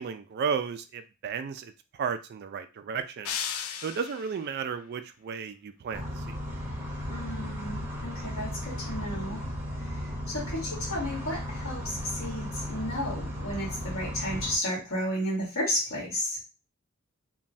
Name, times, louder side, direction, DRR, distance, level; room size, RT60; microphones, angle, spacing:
voice 1, 0.0-1.7 2.0-3.4 3.8-6.4, right 6 dB, 50° right, 9 dB, 0.3 m, -33 dB
sound 1, 3.2-4.5, left 8 dB, 90° left, 0.4 m, -35 dB
sound 2, 5.9-14.5, left 1 dB, 10° right, 0.7 m, -35 dB
voice 2, 7.1-9.4 9.9-10.0 10.3-16.4, equal, 70° left, -4 dB, 1.6 m, -33 dB
3.0 x 2.2 x 2.6 m, 0.30 s
head